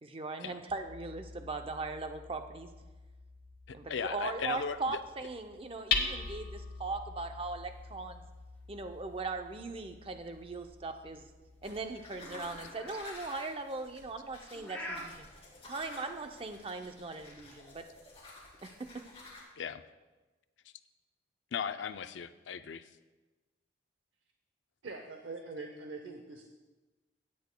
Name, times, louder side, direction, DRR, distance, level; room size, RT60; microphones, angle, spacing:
voice 1, 0.0-2.7 3.7-8.2 8.7-11.2 11.6-15.3 15.6-17.9 18.6-19.0, right 3 dB, 30° right, 6 dB, 0.5 m, -39 dB
Hammer, 0.7-12.4, left 5 dB, 55° left, 1.1 m, -42 dB
voice 2, 3.7-5.0 19.6-19.8 21.5-22.8, left 6 dB, 80° left, 11 dB, 0.4 m, -37 dB
sound 1, 4.4-17.5, equal, 10° left, 3.1 m, -51 dB
sound 2, 11.6-19.4, left 2 dB, 30° left, 2.7 m, -52 dB
voice 3, 24.8-26.4, right 3 dB, 85° right, 3 dB, 0.7 m, -43 dB
17.0 x 8.6 x 2.2 m, 1.2 s
head